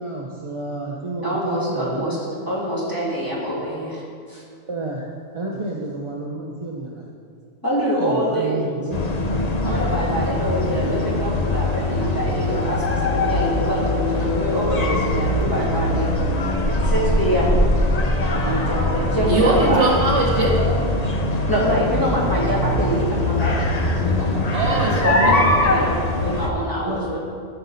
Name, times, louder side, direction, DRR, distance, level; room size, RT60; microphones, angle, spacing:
voice 1, 0.0-2.2 4.7-5.1 5.3-7.1 8.0-9.0 25.1-25.6 26.8-27.2, right 2 dB, 30° right, -2 dB, 0.6 m, -30 dB
voice 2, 1.2-2.2 2.5-4.0 4.3-4.4 7.6-8.6 9.6-16.1 16.8-17.6 18.3-19.9 21.5-23.5 24.0-24.3 25.0-25.3 25.7-27.2, right 1 dB, 15° left, -7 dB, 2.7 m, -25 dB
sound 1, 8.9-26.5, left 2 dB, 35° left, 0.8 m, -22 dB
voice 3, 19.3-20.6 24.5-25.7, right 2 dB, 55° right, -1 dB, 1.5 m, -21 dB
13.5 x 6.7 x 4.1 m, 2.3 s
omnidirectional pair, 1.4 m